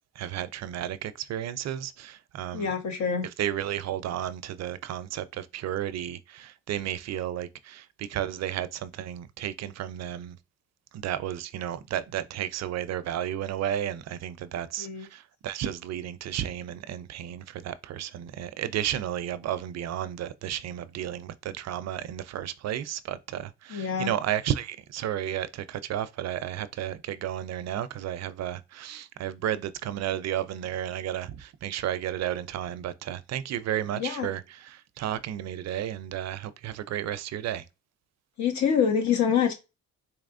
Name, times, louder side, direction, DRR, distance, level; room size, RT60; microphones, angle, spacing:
voice 1, 0.2-2.7 3.4-10.4 10.9-37.7, right 11 dB, 60° right, 0.5 m, -33 dB
voice 2, 2.5-3.2 14.8-15.1 23.7-24.1 34.0-34.3 38.4-39.5, left 7 dB, 65° left, 1.2 m, -26 dB
4.1 x 2.9 x 2.5 m
cardioid pair, 90°, 30 cm